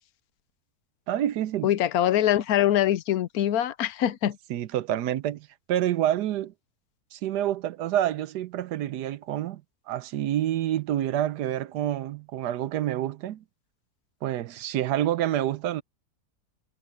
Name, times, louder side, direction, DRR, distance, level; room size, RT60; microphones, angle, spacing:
voice 1, 1.1-1.7 4.5-6.5 7.1-9.6 9.9-13.4 14.2-15.8, right 12 dB, 80° right, 1.3 m, -28 dB
voice 2, 1.6-4.4, left 12 dB, 70° left, 1.2 m, -23 dB
omnidirectional pair, 1.8 m